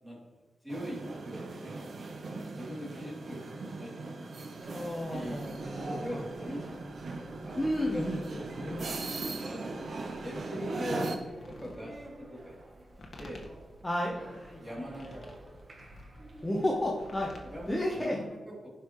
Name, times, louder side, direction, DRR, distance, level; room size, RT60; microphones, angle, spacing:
voice 1, 0.6-1.8 2.3-4.3 5.1-6.9 7.4-8.8 9.1-11.1 11.6-12.6 13.2-13.4 14.0-14.1 14.6-15.2 15.8-15.9 17.4-18.7, equal, 10° right, -5 dB, 3.2 m, -42 dB
sound 1, 0.7-11.2, right 3 dB, 60° right, 1.0 m, -39 dB
sound 2, 4.6-18.1, right 2 dB, 40° right, 1.2 m, -52 dB
voice 2, 4.7-6.2 7.6-8.9 10.9-11.0 13.8-14.6 16.4-17.3 17.7-18.2, left 1 dB, 15° left, -3 dB, 1.2 m, -32 dB
sound 3, 11.2-18.0, left 1 dB, 50° left, 1.6 m, -52 dB
15.5 x 5.6 x 3.2 m, 1.3 s
wide cardioid pair, 105°, 0 cm